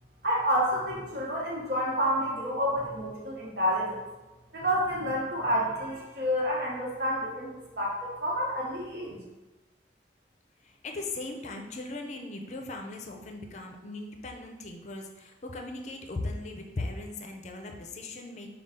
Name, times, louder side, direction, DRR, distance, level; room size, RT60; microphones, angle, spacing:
voice 1, 0.2-4.0 4.5-9.2, equal, 60° right, -4 dB, 1.1 m, -29 dB
voice 2, 10.6-18.5, left 2 dB, 40° left, 2 dB, 0.5 m, -38 dB
5.3 x 2.3 x 3.6 m, 1.1 s
head